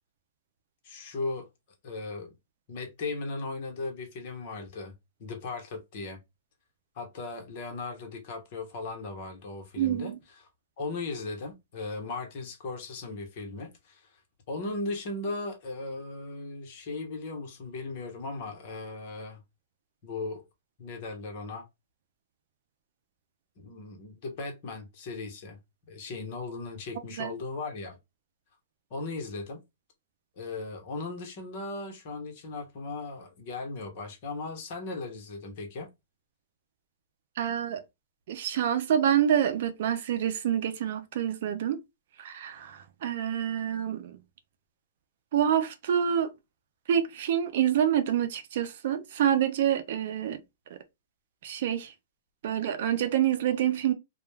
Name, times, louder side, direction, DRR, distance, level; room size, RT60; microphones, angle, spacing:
voice 1, 0.8-1.5 1.8-2.3 2.7-4.9 5.2-6.2 6.9-10.1 10.8-14.1 14.5-19.4 20.0-20.4 20.8-21.7 23.6-25.6 25.9-28.0 28.9-29.6 30.4-35.9 37.7-37.8, left 3 dB, 50° left, 1.0 m, -37 dB
voice 2, 9.8-10.2 27.2-27.3 37.4-37.8 38.3-41.8 42.2-44.2 45.3-46.3 46.9-50.4 51.4-51.9 52.4-53.9, right 9 dB, 60° right, 0.5 m, -27 dB
2.3 x 2.2 x 3.1 m
hypercardioid pair, 135°, 0 cm